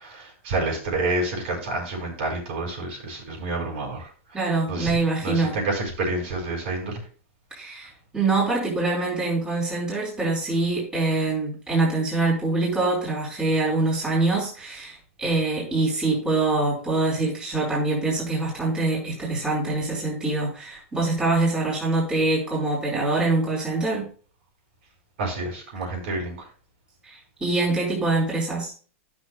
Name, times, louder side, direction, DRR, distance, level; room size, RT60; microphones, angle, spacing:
voice 1, 0.0-4.1 4.7-5.0 5.2-7.0 25.2-26.4, right 2 dB, 60° right, -1 dB, 4.5 m, -28 dB
voice 2, 4.3-5.6 7.5-24.1 27.0-28.7, right 3 dB, 10° right, -6 dB, 3.8 m, -24 dB
13.5 x 6.4 x 2.2 m, 0.40 s
supercardioid pair, 155°, 7 cm